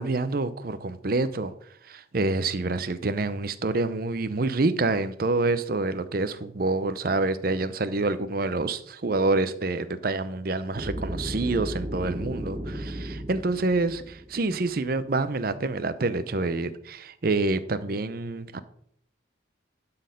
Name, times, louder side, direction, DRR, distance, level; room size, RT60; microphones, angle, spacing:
voice 1, 0.0-1.5 1.8-18.6, right 3 dB, 50° right, 13 dB, 0.6 m, -27 dB
sound 1, 10.7-14.7, right 1 dB, 30° right, 0.9 m, -35 dB
11.5 x 4.2 x 5.2 m, 0.67 s
head